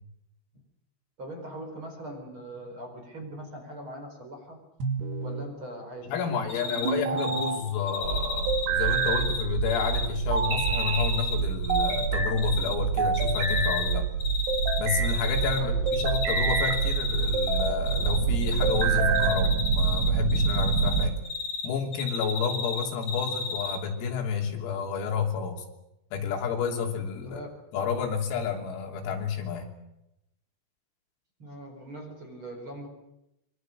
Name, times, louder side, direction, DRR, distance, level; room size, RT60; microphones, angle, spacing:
voice 1, 1.2-4.6 5.2-7.4 15.6-15.9 27.2-27.5 31.4-32.9, right 1 dB, 25° right, 4 dB, 4.7 m, -41 dB
sound 1, 4.8-5.5 6.8-7.6 8.5-9.3 10.3-11.1 11.7-12.4 13.0-13.8 14.5-15.1 15.9-16.8 17.3-17.9 18.6-19.5, right 4 dB, 55° right, 4.3 m, -28 dB
voice 2, 6.1-14.1 14.8-21.2 21.6-25.7 26.1-27.5 27.7-29.7, left 6 dB, 85° left, 2 dB, 5.8 m, -30 dB
Cricket, 6.5-6.9 7.2-7.5 7.9-10.1 10.4-12.0 12.4-12.7 13.1-13.9 14.2-15.6 15.9-18.2 18.4-18.8 19.1-21.7 21.9-23.8, left 4 dB, 30° left, 4.4 m, -32 dB
sound 2, 8.0-21.1, right 7 dB, 85° right, 1.9 m, -28 dB
26.5 x 23.0 x 6.5 m, 0.86 s
omnidirectional pair, 6.0 m